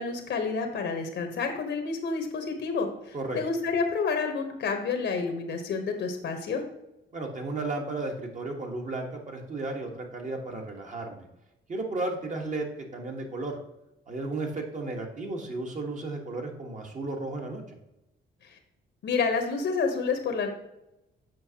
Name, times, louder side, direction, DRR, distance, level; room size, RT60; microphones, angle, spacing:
voice 1, 0.0-6.6 18.4-18.6 19.0-20.5, left 4 dB, 65° left, 5 dB, 0.9 m, -29 dB
voice 2, 7.1-11.3 11.7-12.7 12.9-13.6 14.1-17.6, right 2 dB, 40° right, 2 dB, 1.3 m, -34 dB
7.6 x 5.2 x 2.8 m, 0.91 s
cardioid pair, 90°, 20 cm